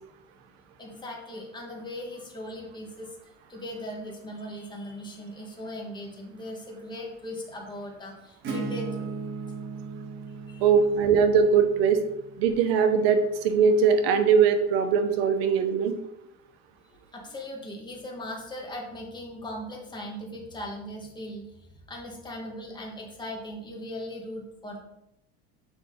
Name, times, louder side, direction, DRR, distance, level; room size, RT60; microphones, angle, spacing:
voice 1, 0.8-3.2 3.5-9.1 9.5-9.6 10.3-10.6 16.8-24.8, left 1 dB, 15° left, -1 dB, 1.6 m, -39 dB
Acoustic guitar / Strum, 8.4-13.9, right 4 dB, 40° right, 1.7 m, -38 dB
voice 2, 10.6-12.0 12.4-15.9, right 6 dB, 90° right, 8 dB, 1.0 m, -21 dB
6.6 x 4.7 x 3.8 m, 0.84 s
cardioid pair, 130°, 30 cm